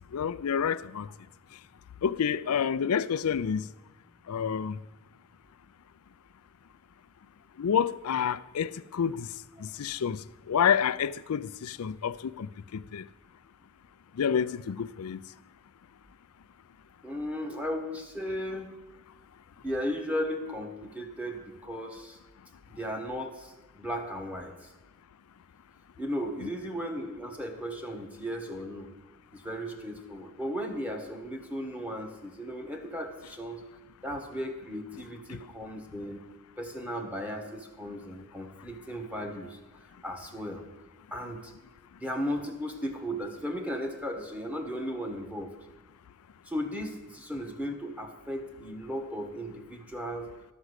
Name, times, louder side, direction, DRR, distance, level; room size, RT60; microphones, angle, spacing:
voice 1, 0.1-1.1 1.5-1.6 2.0-3.7 4.3-4.8 7.6-13.1 14.1-15.2 35.3-35.4, left 7 dB, 85° left, 0.4 m, -29 dB
voice 2, 17.0-18.7 19.6-22.2 22.7-24.7 26.0-28.9 29.3-33.6 34.0-36.2 36.6-39.6 40.0-40.6 41.1-41.5 42.0-45.5 46.5-50.3, equal, 5° right, 1.5 m, -36 dB
12.0 x 6.2 x 8.0 m
head